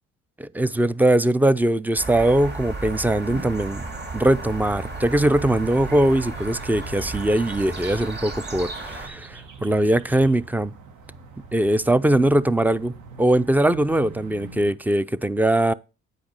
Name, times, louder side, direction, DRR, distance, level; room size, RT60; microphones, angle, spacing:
voice 1, 0.4-3.9 4.1-10.7 11.5-15.7, right 1 dB, 5° right, 0.3 m, -21 dB
sound 1, 2.0-9.1, right 2 dB, 35° right, 2.4 m, -34 dB
sound 2, 2.6-14.7, right 4 dB, 80° right, 1.4 m, -42 dB
8.6 x 5.1 x 5.2 m
cardioid pair, 90°, 30 cm